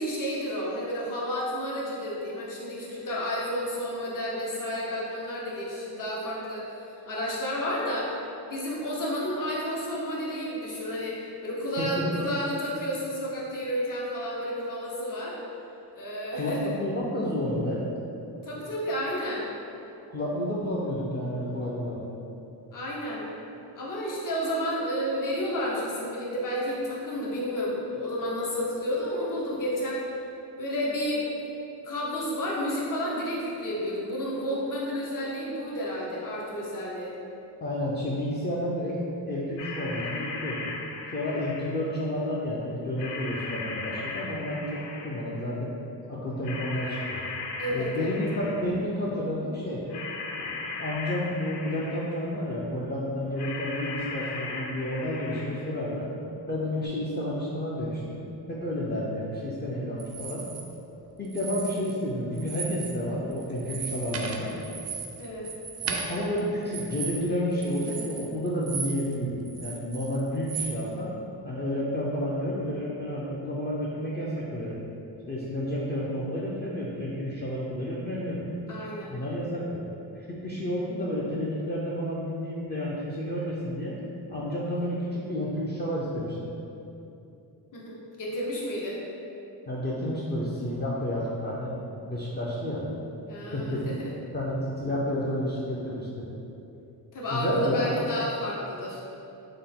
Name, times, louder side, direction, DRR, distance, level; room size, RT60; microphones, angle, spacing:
voice 1, 0.0-8.2 8.5-15.4 15.9-16.7 18.4-19.5 22.7-23.3 23.7-30.0 30.6-31.2 31.8-37.1 47.6-48.2 65.2-65.5 78.7-79.2 87.7-89.0 93.3-94.1 97.1-99.0, equal, 50° left, -5 dB, 0.9 m, -31 dB
voice 2, 11.8-12.2 16.3-17.8 20.1-22.0 37.6-39.0 39.2-40.7 41.1-45.7 46.1-47.2 47.7-49.8 50.3-56.1 56.5-60.4 61.2-64.5 65.8-71.1 71.4-74.8 75.3-78.5 79.1-79.8 80.3-84.0 84.3-86.4 89.7-91.7 92.0-92.8 93.5-93.8 94.3-96.2 97.3-98.0, left 1 dB, 25° left, -7 dB, 0.5 m, -30 dB
sound 1, 39.6-41.9 43.0-45.4 46.4-48.9 49.9-52.3 53.4-55.8 56.8-56.9, left 3 dB, 75° left, 0.5 m, -37 dB
sound 2, 60.0-60.6 61.2-62.1 62.3-63.0 63.3-69.2 69.4-70.7, right 5 dB, 40° right, 0.4 m, -36 dB
3.7 x 2.2 x 3.6 m, 2.8 s
cardioid pair, 75°, 42 cm